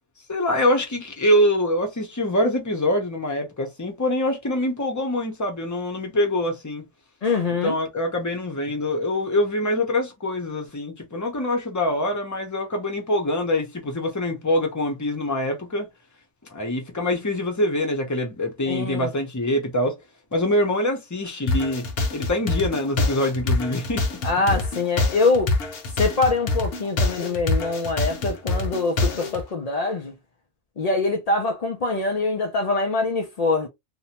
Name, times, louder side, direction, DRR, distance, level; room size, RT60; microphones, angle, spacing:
voice 1, 0.3-6.9 7.6-15.9 16.5-19.9 20.3-21.8 22.1-24.6, left 1 dB, 20° left, 0.5 m, -24 dB
voice 2, 7.2-7.8 18.7-19.1 24.2-25.5 25.9-30.1 30.8-33.7, left 3 dB, 80° left, 0.3 m, -24 dB
sound 1, 21.5-29.4, left 2 dB, 55° left, 0.9 m, -25 dB
2.6 x 2.1 x 2.8 m
omnidirectional pair, 1.3 m